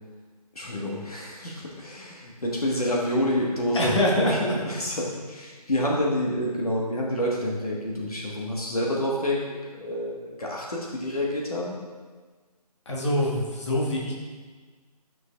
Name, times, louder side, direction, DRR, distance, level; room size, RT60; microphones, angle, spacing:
voice 1, 0.5-11.8, left 1 dB, 65° left, -3 dB, 1.3 m, -28 dB
voice 2, 3.7-4.3 12.8-14.1, left 1 dB, 45° left, -3 dB, 1.4 m, -24 dB
11.0 x 6.1 x 2.3 m, 1.4 s
figure-of-eight pair, 150°, 21 cm